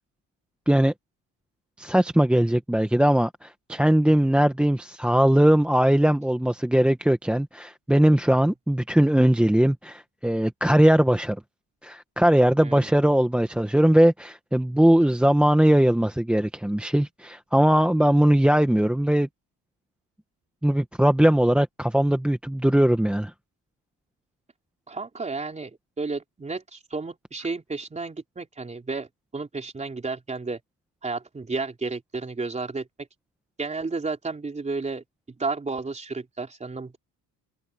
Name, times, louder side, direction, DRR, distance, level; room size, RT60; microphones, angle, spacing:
voice 1, 1.8-11.4 11.8-19.3 20.6-23.3, right 1 dB, 5° right, 0.9 m, -20 dB
voice 2, 12.6-13.0 24.9-30.6 31.0-33.1 33.6-35.0 35.4-37.0, right 3 dB, 20° right, 3.7 m, -32 dB
cardioid pair, 160°, 37 cm